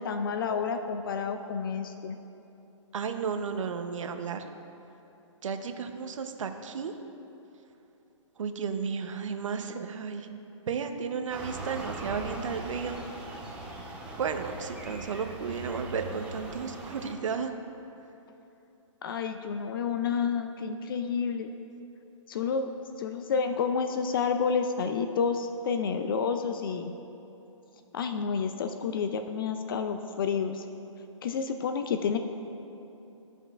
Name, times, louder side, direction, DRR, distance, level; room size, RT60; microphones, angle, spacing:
voice 1, 0.0-2.2 19.0-21.5 22.3-22.7 23.0-26.9 27.9-30.6 31.2-32.2, left 6 dB, 45° left, 8 dB, 0.4 m, -30 dB
voice 2, 2.9-4.4 5.4-6.9 8.4-10.3 10.7-13.0 14.2-17.5, right 6 dB, 75° right, 7 dB, 0.7 m, -33 dB
sound 1, 11.3-17.1, right 2 dB, 5° right, 0.7 m, -40 dB
14.0 x 5.4 x 2.4 m, 2.9 s
hypercardioid pair, 155°, 16 cm